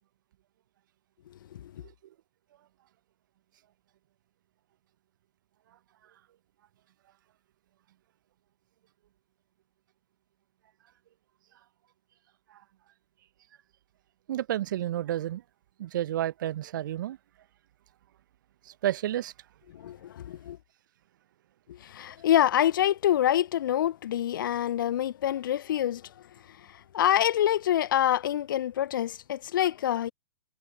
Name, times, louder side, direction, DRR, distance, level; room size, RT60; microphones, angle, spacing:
voice 1, 14.3-15.4 15.8-17.2 18.6-19.3, right 12 dB, 50° right, 1.0 m, -31 dB
voice 2, 19.7-20.6 21.7-26.1 26.7-30.1, left 11 dB, 55° left, 0.8 m, -26 dB
figure-of-eight pair, 120°, 13 cm